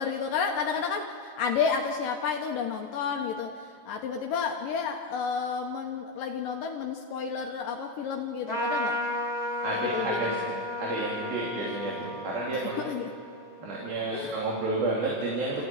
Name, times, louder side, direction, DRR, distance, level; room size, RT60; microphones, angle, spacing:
voice 1, 0.0-9.0 9.7-10.6 11.6-11.7 12.5-13.1 14.1-14.5, left 6 dB, 75° left, 2 dB, 2.6 m, -31 dB
Trumpet, 8.5-14.3, left 1 dB, 15° left, 1.7 m, -34 dB
voice 2, 9.6-10.4 10.8-12.8 13.6-15.7, right 2 dB, 80° right, -4 dB, 4.8 m, -31 dB
26.5 x 15.5 x 8.9 m, 2.1 s
omnidirectional pair, 4.1 m